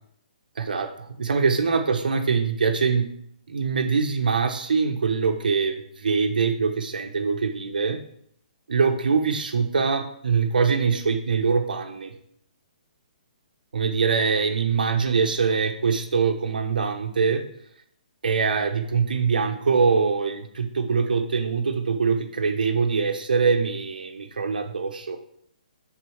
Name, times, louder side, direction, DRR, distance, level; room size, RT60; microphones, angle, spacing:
voice 1, 0.6-3.1 3.5-8.0 8.7-12.1 13.7-17.4 18.2-25.2, right 5 dB, 85° right, 5 dB, 0.8 m, -23 dB
4.5 x 3.9 x 5.6 m, 0.70 s
hypercardioid pair, 150°, 5 cm